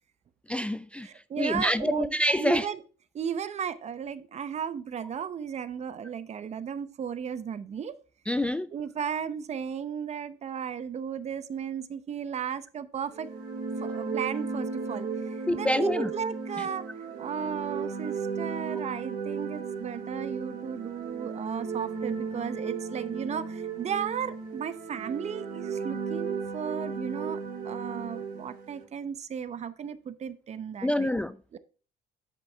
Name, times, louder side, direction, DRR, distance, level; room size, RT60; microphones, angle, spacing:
voice 1, 0.5-1.1 1.4-2.7 8.3-8.7 15.5-16.1 30.8-31.4, left 1 dB, 5° left, 0.4 m, -26 dB
voice 2, 1.0-2.8 3.1-8.0 8.7-13.3 13.8-16.8 17.2-27.4 27.6-31.1 31.5-31.6, right 7 dB, 40° right, 0.8 m, -35 dB
sound 1, 13.1-28.8, right 5 dB, 60° right, 3.3 m, -35 dB
10.5 x 5.4 x 3.4 m
cardioid pair, 110°, 17 cm